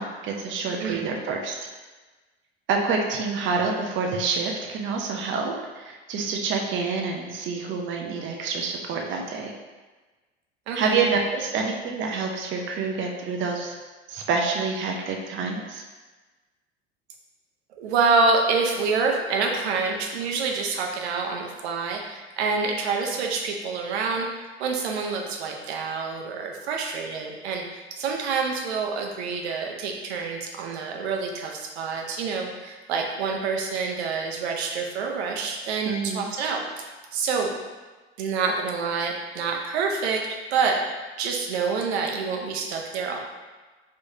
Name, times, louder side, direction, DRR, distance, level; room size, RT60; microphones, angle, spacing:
voice 1, 0.0-1.6 2.7-9.5 10.7-13.7 14.1-15.8 35.8-36.3, right 4 dB, 35° right, 1 dB, 0.6 m, -27 dB
voice 2, 0.8-1.1 10.7-10.9 17.8-37.6 38.2-40.2 40.5-40.8 41.2-43.2, right 4 dB, 75° right, 1 dB, 0.8 m, -27 dB
4.6 x 3.3 x 2.7 m, 1.3 s
hypercardioid pair, 75°, 33 cm